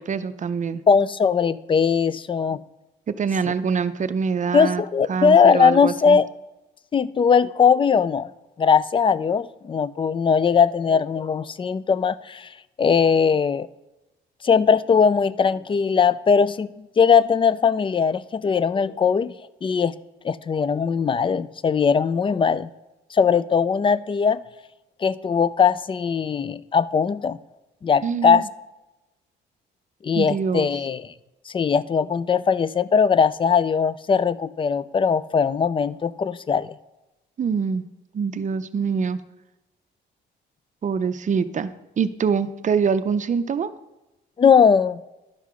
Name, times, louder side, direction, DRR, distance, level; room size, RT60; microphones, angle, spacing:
voice 1, 0.0-0.8 3.1-4.8 5.1-6.2 28.0-28.5 30.1-30.7 37.4-37.8 38.1-39.2 40.8-41.7 42.0-43.7, right 6 dB, 40° right, 12 dB, 0.6 m, -24 dB
voice 2, 0.9-2.6 4.5-6.3 6.9-8.3 8.6-12.5 12.8-13.7 14.4-19.3 19.6-19.9 20.2-22.7 23.1-24.4 25.0-27.4 27.8-28.4 30.0-31.1 31.5-36.7 44.4-45.0, left 6 dB, 25° left, 18 dB, 0.4 m, -20 dB
11.5 x 5.5 x 4.9 m, 1.0 s
cardioid pair, 90°, 20 cm